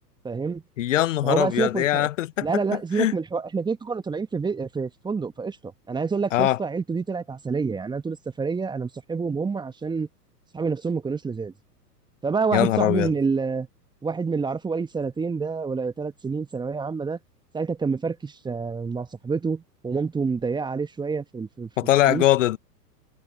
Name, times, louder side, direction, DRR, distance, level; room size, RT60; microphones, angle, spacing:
voice 1, 0.2-0.6 1.2-2.1 2.4-5.6 5.9-10.1 10.5-11.5 12.2-13.7 14.0-17.2 17.5-21.7 22.1-22.2, right 5 dB, 10° right, 1.6 m, -27 dB
voice 2, 0.8-3.1 6.3-6.6 12.5-13.1 21.8-22.6, left 13 dB, 50° left, 1.3 m, -22 dB
figure-of-eight pair, 105°, 49 cm